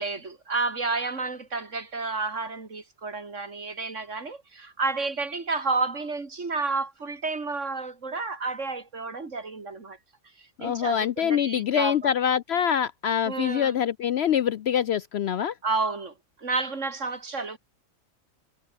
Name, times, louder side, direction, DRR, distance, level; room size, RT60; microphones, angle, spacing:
voice 1, 0.0-10.0 10.4-12.1 13.2-13.7 15.6-17.6, right 3 dB, 60° right, 3.1 m, -31 dB
voice 2, 10.6-15.5, left 9 dB, 65° left, 0.7 m, -25 dB
omnidirectional pair, 1.4 m